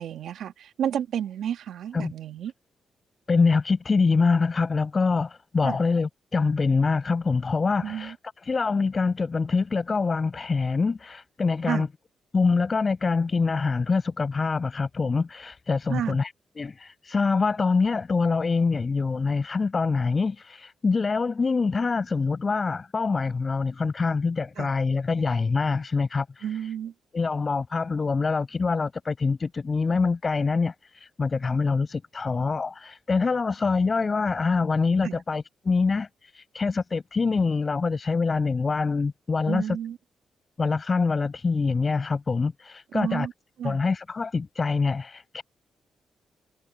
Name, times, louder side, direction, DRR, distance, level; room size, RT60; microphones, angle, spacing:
voice 1, 0.0-2.5 5.6-5.8 7.8-8.2 11.7-11.9 15.9-16.2 24.6-24.7 26.4-26.9 35.0-35.2 39.5-40.0 42.9-43.3 43.6-43.8, right 9 dB, 75° right, 1.8 m, -31 dB
voice 2, 3.3-11.9 12.3-26.7 27.1-39.8 40.6-43.3 43.6-45.4, left 4 dB, 40° left, 6.9 m, -25 dB
supercardioid pair, 60°, 0 cm